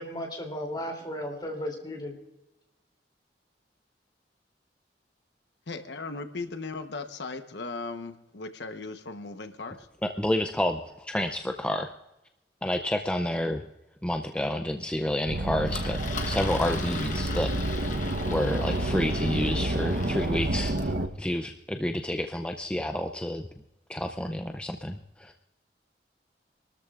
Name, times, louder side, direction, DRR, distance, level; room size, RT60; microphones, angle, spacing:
voice 1, 0.0-2.1, equal, 25° left, 1 dB, 2.9 m, -35 dB
voice 2, 5.7-9.9, left 3 dB, 80° left, 7 dB, 1.0 m, -37 dB
voice 3, 10.2-11.9 12.6-13.6 14.0-16.0 16.2-18.0 18.3-23.5 23.9-25.3, left 1 dB, 5° left, 4 dB, 0.5 m, -30 dB
sound 1, 15.3-21.1, right 1 dB, 60° right, 0.9 m, -29 dB
Engine, 15.7-20.9, left 5 dB, 45° left, 1.2 m, -40 dB
26.0 x 13.5 x 2.5 m, 0.96 s
head